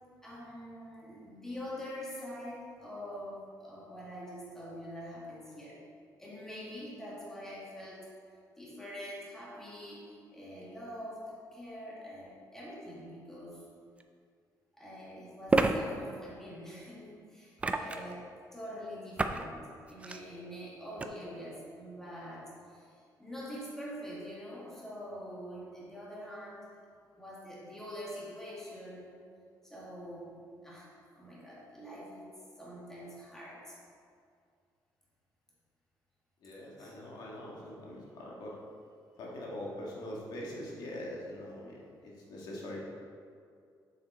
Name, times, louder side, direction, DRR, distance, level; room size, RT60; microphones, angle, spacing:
voice 1, 0.2-5.8 6.2-8.1 8.6-13.6 14.8-18.2 18.5-26.7 27.2-29.1 29.6-30.9 31.2-32.3 32.6-33.8 36.8-36.9, equal, 5° left, -7 dB, 2.0 m, -45 dB
sound 1, 14.0-14.1 15.5-15.7 17.6-18.1 19.2-19.5 19.9-20.2 21.0-21.1, right 3 dB, 15° right, 0.4 m, -28 dB
voice 2, 36.4-38.6 39.2-42.8, left 1 dB, 75° left, -4 dB, 1.6 m, -43 dB
7.2 x 6.8 x 4.2 m, 2.3 s
cardioid pair, 150°, 7 cm